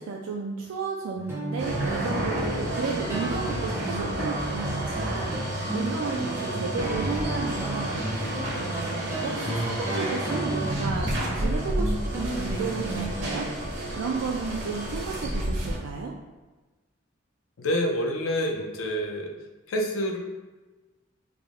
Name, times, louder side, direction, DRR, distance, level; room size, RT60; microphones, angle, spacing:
voice 1, 0.0-5.4 5.7-8.0 8.5-13.5 13.9-16.1, right 4 dB, 80° right, -1 dB, 0.3 m, -33 dB
sound 1, 1.2-13.4, right 1 dB, 10° right, 0.5 m, -33 dB
sound 2, 1.6-15.8, right 1 dB, 55° right, 0.7 m, -31 dB
voice 2, 17.6-19.3 19.7-20.2, equal, 70° left, 2 dB, 0.4 m, -27 dB
3.4 x 2.0 x 3.5 m, 1.2 s
head